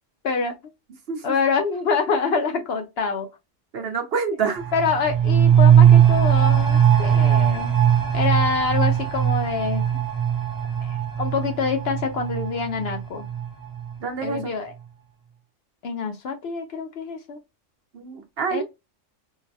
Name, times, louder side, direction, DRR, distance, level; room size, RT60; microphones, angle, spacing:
voice 1, 0.2-0.6 1.2-3.3 4.7-7.7 8.1-9.9 10.8-13.3 14.2-14.7 15.8-17.4 18.5-18.6, left 4 dB, 60° left, 0.8 m, -26 dB
voice 2, 3.7-4.7 14.0-14.5 17.9-18.6, right 5 dB, 60° right, 0.9 m, -27 dB
sound 1, 4.6-14.0 14.3-14.4, right 9 dB, 30° right, 0.4 m, -19 dB
3.8 x 2.1 x 2.7 m
omnidirectional pair, 1.3 m